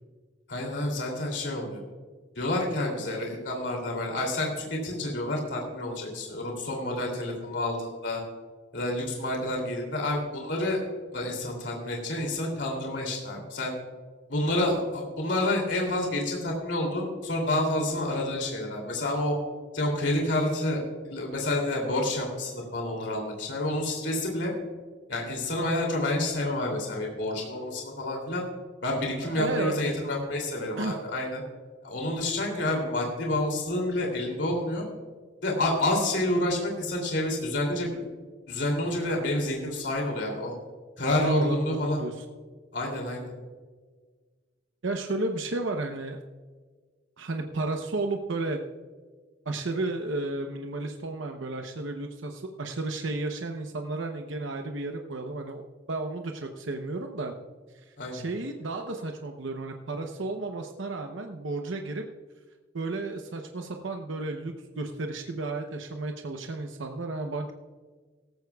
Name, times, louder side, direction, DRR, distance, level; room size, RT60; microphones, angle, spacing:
voice 1, 0.5-1.8 2.4-8.2 8.7-10.8 11.1-13.7 14.3-19.3 19.7-24.5 25.1-28.4 28.8-31.4 31.8-34.8 35.4-38.0 38.5-40.5 41.0-42.0 42.7-43.2 58.0-58.2, left 1 dB, 65° left, 0 dB, 2.9 m, -29 dB
voice 2, 29.2-29.9 30.8-31.0 41.2-42.2 44.8-46.2 47.2-48.6 49.5-57.3 57.9-62.0 62.7-67.5, right 2 dB, 85° right, 4 dB, 0.8 m, -33 dB
17.0 x 14.5 x 2.3 m, 1.5 s
head